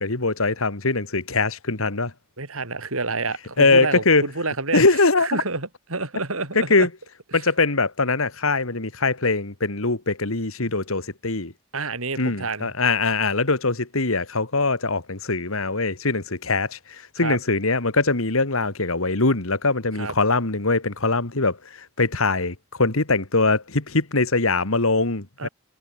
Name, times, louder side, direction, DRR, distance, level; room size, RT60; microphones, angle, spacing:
voice 1, 0.0-2.1 3.6-4.2 4.7-5.4 6.7-6.9 7.3-11.5 12.2-16.8 17.2-21.6 22.0-25.5, left 3 dB, 80° left, 2.3 m, -22 dB
voice 2, 2.4-4.8 5.2-6.9 7.3-7.5 11.7-12.7 17.2-17.4 20.0-20.1 25.4-25.5, right 3 dB, 85° right, 4.8 m, -29 dB
head